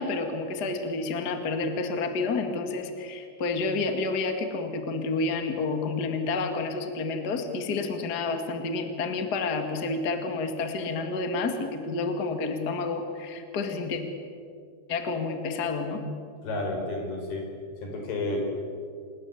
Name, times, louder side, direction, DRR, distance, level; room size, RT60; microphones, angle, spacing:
voice 1, 0.0-14.0 14.9-16.0, left 3 dB, 75° left, 6 dB, 0.9 m, -29 dB
voice 2, 16.4-17.4 17.8-18.4, left 2 dB, 50° left, 2 dB, 6.3 m, -31 dB
28.5 x 19.0 x 8.5 m, 2.3 s
omnidirectional pair, 5.8 m